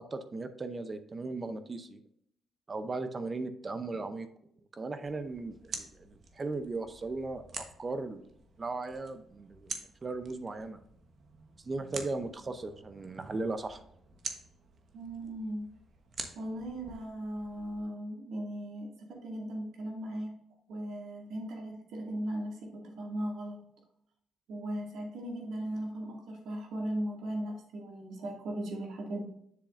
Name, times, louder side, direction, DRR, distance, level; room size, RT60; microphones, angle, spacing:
voice 1, 0.0-2.0 2.7-4.3 4.8-8.2 8.6-10.8 11.6-13.8, right 3 dB, 30° right, 10 dB, 0.6 m, -37 dB
sound 1, 5.0-17.8, right 4 dB, 50° right, 1.2 m, -47 dB
voice 2, 14.9-15.7 16.3-20.4 20.7-23.6 24.5-29.3, right 1 dB, 75° right, 0 dB, 2.2 m, -37 dB
7.6 x 6.8 x 2.5 m, 0.73 s
cardioid pair, 90°, 0 cm